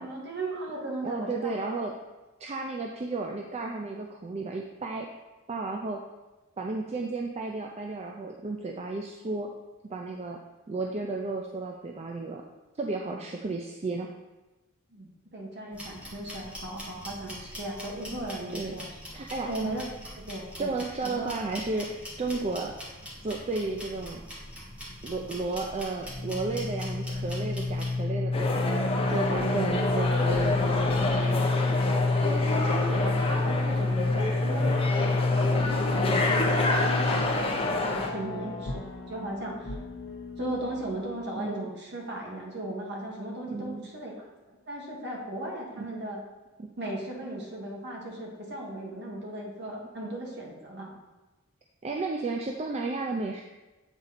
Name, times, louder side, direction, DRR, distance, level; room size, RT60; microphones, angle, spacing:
voice 1, 0.0-1.6 13.1-13.2 14.9-18.9 19.4-19.8 20.1-21.3 32.2-38.7 39.0-39.8 40.4-46.2 46.8-50.9, right 1 dB, 50° right, -2 dB, 1.5 m, -37 dB
voice 2, 1.0-1.9 2.4-5.1 5.5-6.0 6.6-9.5 9.9-10.4 10.7-12.4 12.8-14.1 18.5-18.7 19.1-19.5 20.6-22.7 23.2-24.2 25.0-28.6 29.1-31.7 33.8-34.1 36.0-36.3 38.1-38.5 41.4-41.7 43.5-43.9 45.8-45.9 46.6-46.7 51.8-53.4, right 3 dB, 30° right, 1 dB, 0.4 m, -33 dB
sound 1, 15.7-28.0, equal, 5° right, 1.4 m, -43 dB
sound 2, 24.9-25.4 26.1-41.0, left 2 dB, 55° left, 0.8 m, -29 dB
sound 3, 28.3-38.1, left 2 dB, 25° left, 0.7 m, -29 dB
8.0 x 4.1 x 4.1 m, 1.1 s
head